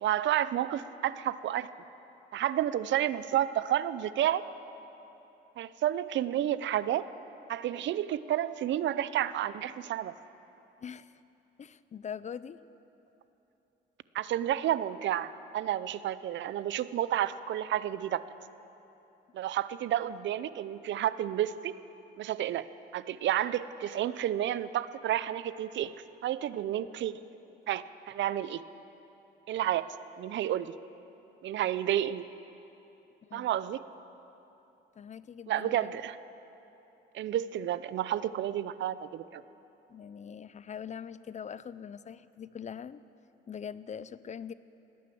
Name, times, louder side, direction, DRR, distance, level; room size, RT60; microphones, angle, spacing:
voice 1, 0.0-1.7 2.3-4.4 5.6-7.1 7.5-10.1 14.1-18.2 19.3-21.7 22.2-22.7 22.9-25.9 26.2-27.1 27.7-28.6 29.5-29.9 30.2-30.7 31.4-32.3 33.3-33.8 35.5-36.2 37.1-39.4, right 11 dB, 70° right, 15 dB, 0.5 m, -30 dB
voice 2, 10.8-11.2 11.6-12.6 33.2-33.5 35.0-36.0 39.9-43.0 43.5-44.5, left 7 dB, 35° left, 16 dB, 0.4 m, -42 dB
19.0 x 9.3 x 7.7 m, 3.0 s
cardioid pair, 90°, 20 cm